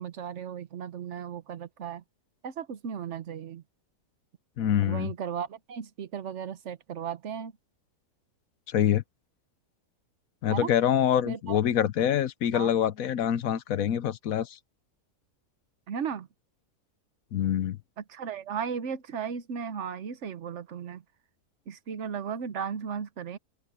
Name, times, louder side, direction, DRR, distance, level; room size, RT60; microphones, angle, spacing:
voice 1, 0.0-2.0 2.4-3.6 4.8-7.5 10.5-10.7 11.2-11.6 12.5-12.7 15.9-16.3 18.0-21.0 21.7-23.4, right 7 dB, 50° right, 1.1 m, -35 dB
voice 2, 4.6-5.1 8.7-9.0 10.4-14.6 17.3-17.8, left 10 dB, 65° left, 1.0 m, -25 dB
omnidirectional pair, 1.8 m